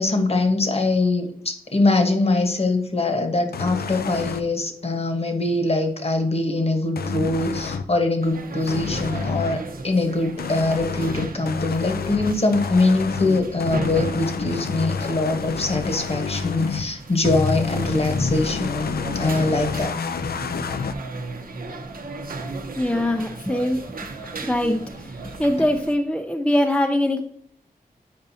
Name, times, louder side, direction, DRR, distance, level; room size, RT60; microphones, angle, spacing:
voice 1, 0.0-20.0, left 2 dB, 40° left, 5 dB, 1.1 m, -23 dB
sound 1, 3.5-4.4 7.0-7.9 8.7-9.6 10.4-16.9 17.2-20.9, left 5 dB, 85° left, 0.5 m, -28 dB
sound 2, 8.2-25.9, right 3 dB, 70° right, 0.8 m, -37 dB
voice 2, 22.8-23.8 24.3-25.1 25.4-27.2, left 1 dB, 5° left, 4 dB, 0.4 m, -22 dB
8.8 x 5.1 x 2.7 m, 0.64 s
wide cardioid pair, 95°, 15 cm